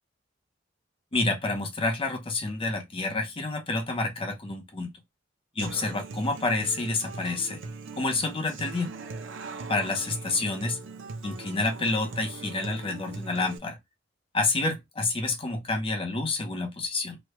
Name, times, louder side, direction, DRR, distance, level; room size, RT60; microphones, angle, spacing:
voice 1, 1.1-4.9 5.6-7.6 7.9-8.9 9.7-10.8 11.2-13.8 14.3-17.2, left 3 dB, 30° left, 0.7 m, -29 dB
Human voice / Acoustic guitar, 5.6-13.6, right 3 dB, 75° right, 0.5 m, -40 dB
3.0 x 2.2 x 3.0 m
head